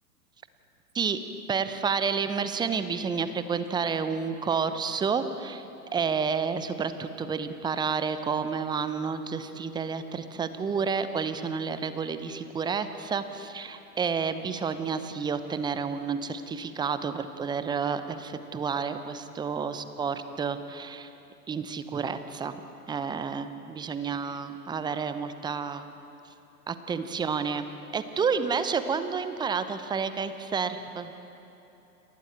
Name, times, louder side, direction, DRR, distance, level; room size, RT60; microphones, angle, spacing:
voice 1, 1.5-5.6 5.9-21.1 21.5-22.6 22.9-25.8 26.7-27.7 27.9-31.1, right 5 dB, 10° right, 11 dB, 0.8 m, -30 dB
30.0 x 28.5 x 4.5 m, 3.0 s
figure-of-eight pair, 110°, 47 cm